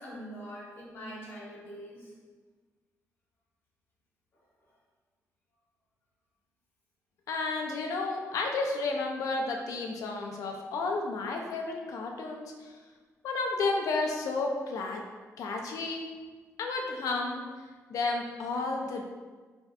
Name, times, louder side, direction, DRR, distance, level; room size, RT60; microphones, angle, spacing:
voice 1, 0.0-2.1, equal, 45° left, -6 dB, 0.9 m, -43 dB
voice 2, 7.3-12.8 13.2-15.0 15.4-16.1 16.6-17.5 17.9-19.0, left 3 dB, 80° left, 2 dB, 0.4 m, -32 dB
3.3 x 2.6 x 2.3 m, 1.4 s
wide cardioid pair, 175°, 6 cm